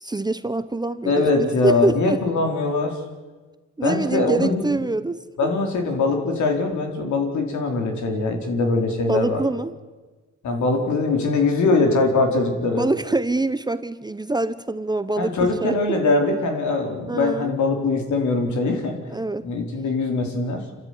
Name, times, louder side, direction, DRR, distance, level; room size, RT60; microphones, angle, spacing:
voice 1, 0.0-2.2 3.8-5.2 9.1-9.7 12.8-15.3 15.6-16.0 17.1-17.6 19.1-19.4, right 2 dB, 15° right, 13 dB, 0.9 m, -24 dB
voice 2, 1.0-3.0 3.8-4.7 5.4-9.4 10.4-12.9 15.2-19.0 19.4-20.7, left 3 dB, 70° left, 3 dB, 4.3 m, -22 dB
27.0 x 13.5 x 9.6 m, 1.3 s
cardioid pair, 90°, 30 cm